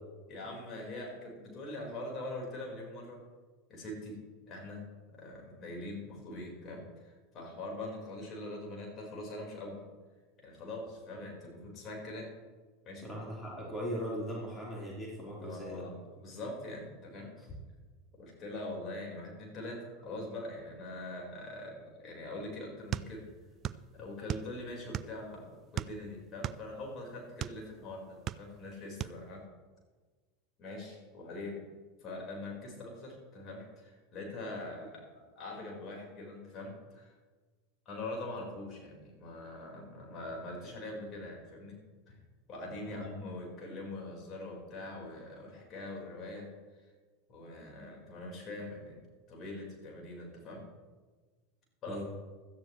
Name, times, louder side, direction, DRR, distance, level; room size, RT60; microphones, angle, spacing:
voice 1, 0.3-3.2 3.7-4.2 4.5-9.8 10.4-12.3 12.8-13.1 15.4-17.3 18.1-23.3 23.9-29.4 30.6-31.6 32.0-37.1 37.8-41.8 42.1-42.2 42.5-46.5 47.3-49.0 49.3-50.6 51.8-52.0, left 2 dB, 35° left, -1 dB, 5.0 m, -43 dB
voice 2, 13.0-15.8 42.9-43.0 51.9-52.0, equal, 15° left, -5 dB, 4.5 m, -39 dB
sound 1, 22.9-23.9 24.1-25.3 25.7-27.6 28.1-28.7 29.0-29.2, right 11 dB, 35° right, 0.5 m, -37 dB
16.5 x 13.5 x 3.3 m, 1.4 s
figure-of-eight pair, 85°, 0 cm